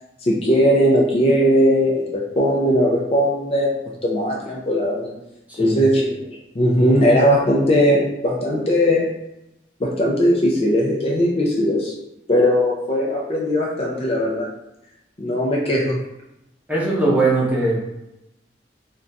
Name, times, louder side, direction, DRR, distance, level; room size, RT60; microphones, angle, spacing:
voice 1, 0.2-5.2 5.6-9.1 9.8-11.9 12.3-14.5 15.2-16.0, equal, 35° left, -2 dB, 0.4 m, -19 dB
voice 2, 5.5-5.8 16.7-17.9, right 2 dB, 10° right, -5 dB, 0.7 m, -20 dB
2.4 x 2.2 x 3.9 m, 0.90 s
head